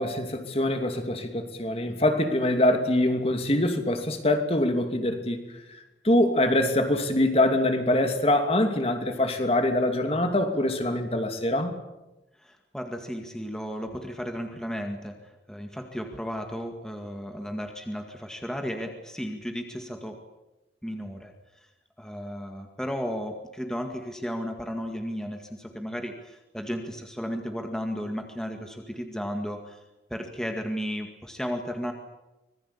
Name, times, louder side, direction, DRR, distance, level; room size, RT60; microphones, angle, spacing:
voice 1, 0.0-5.4 5.7-5.8 6.0-11.8, left 1 dB, 35° left, 6 dB, 2.7 m, -24 dB
voice 2, 12.4-20.2 20.8-21.7 22.0-29.8 30.1-31.9, equal, 5° left, 3 dB, 2.0 m, -34 dB
25.5 x 20.5 x 8.6 m, 0.99 s
head